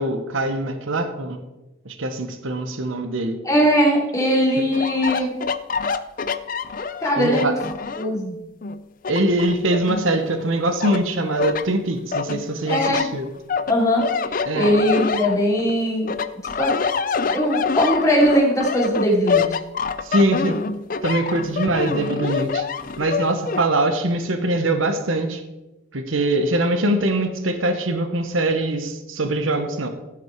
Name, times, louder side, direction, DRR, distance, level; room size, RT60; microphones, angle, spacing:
voice 1, 0.0-1.4 1.8-3.4 7.2-7.5 9.1-13.3 14.5-14.7 20.0-20.6 21.0-22.6 23.0-25.4 25.9-29.9, right 1 dB, 90° right, 7 dB, 1.1 m, -22 dB
voice 2, 3.4-5.3 7.0-7.5 8.0-8.4 12.7-13.1 13.7-14.1 14.5-16.1 16.4-16.7 17.3-19.5, equal, 15° left, -3 dB, 2.9 m, -20 dB
sound 1, 4.7-8.2 8.6-10.4 10.8-11.7 12.1-15.7 16.1-23.7, left 5 dB, 45° left, 0.5 m, -26 dB
15.5 x 6.0 x 4.6 m, 1.0 s
head